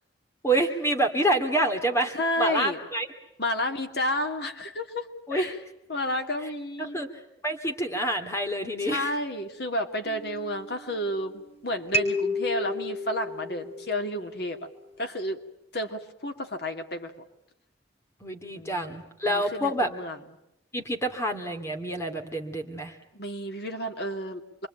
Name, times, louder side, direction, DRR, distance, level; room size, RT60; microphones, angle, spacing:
voice 1, 0.4-3.1 5.3-5.5 6.8-7.1 7.4-9.1 18.2-19.9 20.7-23.0, right 1 dB, 15° left, 6 dB, 2.4 m, -27 dB
voice 2, 2.1-2.8 3.4-5.6 5.9-7.0 8.8-14.6 15.0-15.4 15.7-17.1 18.5-19.0 19.3-20.2 23.1-24.7, left 1 dB, 60° left, 5 dB, 2.6 m, -31 dB
sound 1, 10.1-11.5 11.9-14.6, left 1 dB, 30° left, 4.0 m, -32 dB
27.5 x 23.5 x 9.0 m, 0.84 s
head